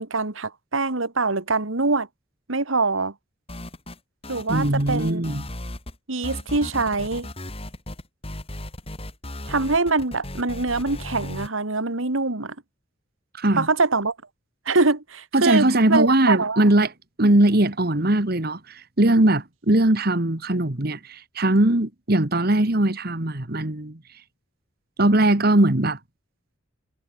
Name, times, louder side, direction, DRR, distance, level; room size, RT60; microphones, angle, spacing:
voice 1, 0.0-2.1 2.5-3.1 4.3-5.2 6.1-7.3 9.5-12.6 13.5-14.1 14.7-16.6, right 3 dB, 85° right, 2.0 m, -24 dB
sound 1, 3.5-6.0 6.2-11.5, left 1 dB, 30° left, 4.8 m, -36 dB
voice 2, 4.5-5.5 13.3-13.7 15.3-16.9 17.2-24.0 25.0-26.0, right 1 dB, 50° right, 1.9 m, -20 dB
head